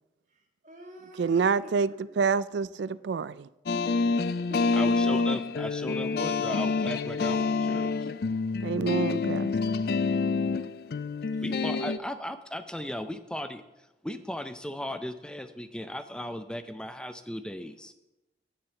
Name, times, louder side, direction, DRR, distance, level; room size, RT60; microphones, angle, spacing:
voice 1, 0.6-2.2 4.1-5.1 5.5-5.6 11.3-11.5, right 1 dB, 45° right, 1.9 m, -45 dB
voice 2, 1.2-3.5 8.6-9.5, right 5 dB, 85° right, 0.4 m, -27 dB
sound 1, 3.7-12.0, left 4 dB, 60° left, 0.4 m, -27 dB
voice 3, 4.7-7.9 11.4-13.6 14.0-17.9, left 1 dB, 5° left, 0.5 m, -36 dB
9.9 x 6.6 x 6.9 m
head